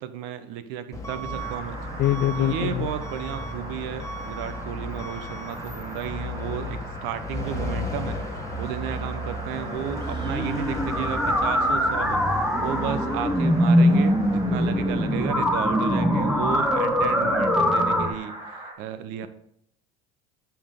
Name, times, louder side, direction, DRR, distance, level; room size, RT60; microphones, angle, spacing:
voice 1, 0.0-1.8 2.3-12.2 12.6-19.3, right 9 dB, 70° right, 12 dB, 0.8 m, -33 dB
Truck / Alarm, 0.9-18.2, left 1 dB, 15° left, 1.5 m, -35 dB
sound 1, 1.4-18.7, right 2 dB, 20° right, 1.9 m, -41 dB
voice 2, 2.0-2.9, left 13 dB, 50° left, 16 dB, 0.5 m, -23 dB
sound 2, 10.0-18.1, equal, 5° right, 0.9 m, -22 dB
8.5 x 5.7 x 3.7 m, 0.74 s
supercardioid pair, 100°, 21 cm